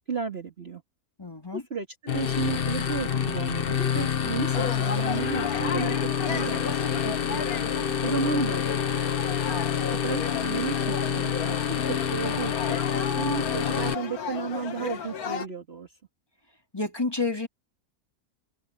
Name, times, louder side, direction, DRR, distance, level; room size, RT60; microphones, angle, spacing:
voice 1, 0.1-0.8 1.5-6.0 6.3-7.5 8.0-9.3 10.0-11.6 11.9-12.8 13.2-15.9, right 5 dB, 40° right, 2.5 m, -33 dB
voice 2, 1.2-1.6 9.5-10.0 16.7-17.5, left 3 dB, 15° left, 2.4 m, -31 dB
sound 1, 2.1-13.9, left 8 dB, 45° left, 1.0 m, -27 dB
sound 2, 4.5-15.5, left 6 dB, 80° left, 1.9 m, -34 dB
omnidirectional pair, 1.6 m